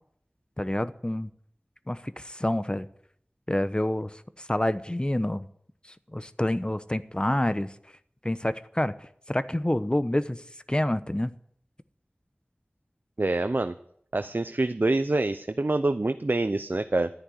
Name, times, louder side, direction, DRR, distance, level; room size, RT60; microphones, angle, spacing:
voice 1, 0.6-1.3 1.9-2.9 3.5-5.5 6.1-7.7 8.2-8.9 9.3-10.4 10.7-11.3, left 1 dB, 25° left, 13 dB, 1.0 m, -27 dB
voice 2, 13.2-13.7 14.1-17.1, right 2 dB, 55° right, 10 dB, 0.7 m, -26 dB
13.5 x 10.5 x 9.6 m, 0.67 s
wide cardioid pair, 45°, 4 cm